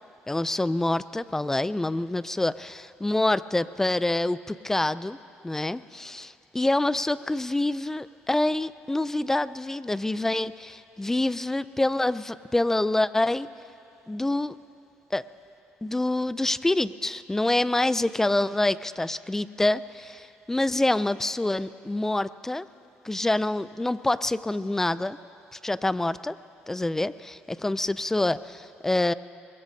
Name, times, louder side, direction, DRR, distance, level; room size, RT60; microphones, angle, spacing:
voice 1, 0.3-5.2 5.4-13.5 14.1-14.5 15.1-15.3 15.8-22.7 23.0-25.2 25.6-26.4 26.7-29.1, left 2 dB, 10° left, 16 dB, 0.4 m, -26 dB
23.5 x 21.0 x 2.8 m, 2.6 s
cardioid pair, 95°, 4 cm